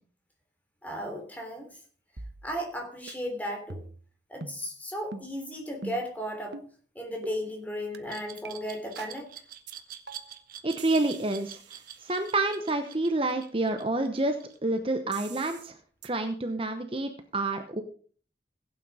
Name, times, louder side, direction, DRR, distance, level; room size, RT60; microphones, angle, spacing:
voice 1, 0.8-1.7 2.4-3.8 4.3-6.6 6.9-9.3, equal, 10° left, 2 dB, 3.1 m, -35 dB
sound 1, 2.2-2.8 3.1-3.2 3.7-4.1 4.4-4.6 5.1-5.3 5.8-6.1 6.5-6.7 7.2-7.4 7.9-8.0 8.4-8.5 9.0-9.2 9.7-9.8 10.1-10.4 10.8-12.6 15.1-15.7 16.0-16.1, right 3 dB, 75° right, 1.1 m, -44 dB
Glass, 8.1-14.9, right 10 dB, 50° right, 1.2 m, -45 dB
voice 2, 10.6-15.8 16.0-17.8, right 2 dB, 30° right, 7 dB, 0.9 m, -29 dB
16.0 x 8.8 x 4.9 m, 0.43 s
head